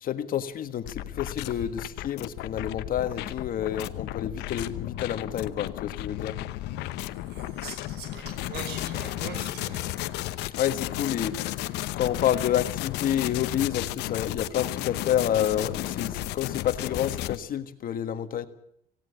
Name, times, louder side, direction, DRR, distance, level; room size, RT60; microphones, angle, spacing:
voice 1, 0.0-6.4 10.5-11.4 11.9-18.5, left 10 dB, 55° left, 11 dB, 1.5 m, -29 dB
sound 1, 0.8-17.4, left 15 dB, 90° left, 0.9 m, -33 dB
voice 2, 7.3-10.5, right 6 dB, 75° right, 9 dB, 5.4 m, -43 dB
18.5 x 16.5 x 8.5 m, 0.69 s
cardioid pair, 110°, 17 cm